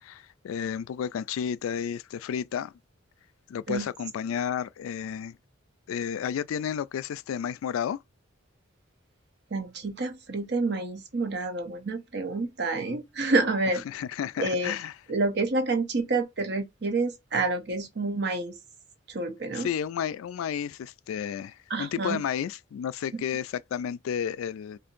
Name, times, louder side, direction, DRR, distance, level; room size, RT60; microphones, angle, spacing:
voice 1, 0.0-2.7 3.5-5.4 5.9-8.0 13.9-14.9 19.5-24.8, left 8 dB, 85° left, 0.3 m, -32 dB
voice 2, 9.5-13.8 14.4-14.8 15.1-18.6 19.1-19.7 21.7-22.2 23.1-23.2, right 3 dB, 55° right, 0.8 m, -28 dB
4.4 x 2.6 x 2.5 m
head